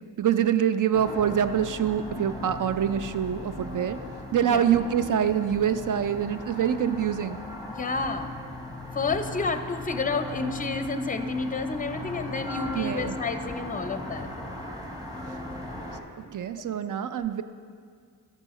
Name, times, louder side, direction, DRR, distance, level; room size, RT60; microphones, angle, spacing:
voice 1, 0.2-4.0 4.3-7.4 12.7-13.2 16.3-17.4, right 9 dB, 50° right, 11 dB, 0.6 m, -25 dB
sound 1, 0.9-16.0, left 2 dB, 10° right, 1.2 m, -37 dB
voice 2, 7.7-8.3 8.9-14.3, left 4 dB, 20° left, 9 dB, 0.6 m, -30 dB
13.0 x 5.6 x 3.1 m, 2.1 s
supercardioid pair, 45°, 42 cm